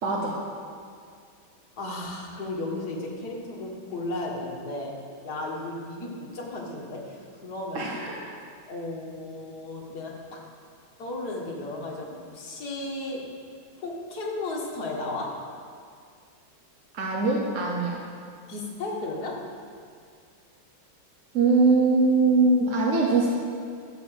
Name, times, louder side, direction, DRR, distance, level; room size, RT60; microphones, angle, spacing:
voice 1, 0.0-0.4 7.7-8.2 16.9-18.0 21.3-23.3, right 3 dB, 45° right, -2 dB, 1.1 m, -22 dB
voice 2, 1.8-5.0 5.2-8.2 8.7-10.4 11.0-13.3 13.8-15.4 18.5-19.5, left 2 dB, 50° left, -2 dB, 2.0 m, -34 dB
13.0 x 5.1 x 7.6 m, 2.2 s
omnidirectional pair, 2.3 m